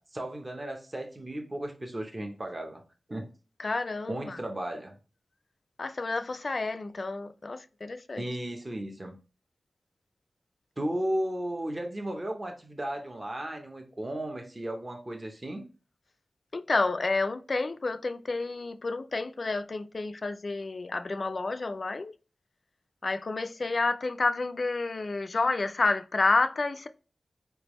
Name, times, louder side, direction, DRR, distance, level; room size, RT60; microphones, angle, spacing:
voice 1, 0.0-2.8 3.1-3.3 4.1-5.0 8.2-9.2 10.8-15.6, right 1 dB, 25° right, 0.7 m, -35 dB
voice 2, 3.6-4.4 5.8-8.2 16.5-22.1 23.0-26.9, left 3 dB, 50° left, 0.3 m, -30 dB
4.4 x 3.4 x 3.0 m
wide cardioid pair, 105°, 0 cm